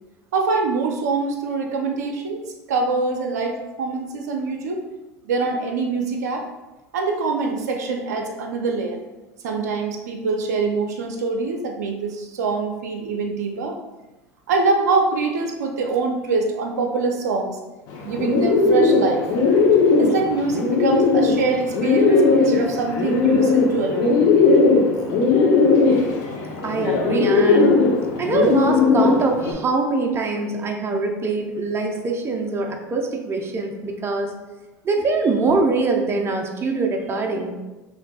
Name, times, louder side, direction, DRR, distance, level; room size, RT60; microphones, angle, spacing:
voice 1, 0.3-4.8 5.2-6.5 6.9-9.0 9.4-13.8 14.5-17.6 18.0-19.2 20.0-24.2, right 4 dB, 85° right, 2 dB, 0.5 m, -24 dB
Bird, 17.9-29.5, left 4 dB, 65° left, 0.8 m, -18 dB
voice 2, 26.6-27.8 28.2-34.3 34.8-37.5, right 3 dB, 30° right, 3 dB, 0.7 m, -23 dB
5.7 x 2.4 x 2.3 m, 1.1 s
hypercardioid pair, 85°, 9 cm